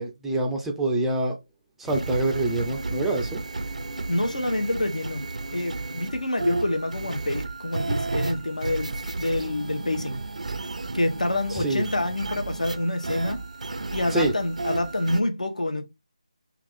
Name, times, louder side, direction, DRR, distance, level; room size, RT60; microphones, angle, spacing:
voice 1, 0.0-1.4 1.8-3.4 11.5-11.8 14.1-14.3, right 2 dB, 5° right, 0.4 m, -26 dB
sound 1, 1.9-15.2, right 3 dB, 70° right, 0.4 m, -33 dB
voice 2, 4.1-5.2 5.5-10.2 10.9-13.4 13.9-15.8, left 1 dB, 80° left, 1.0 m, -27 dB
3.5 x 2.4 x 3.5 m
figure-of-eight pair, 165°, 4 cm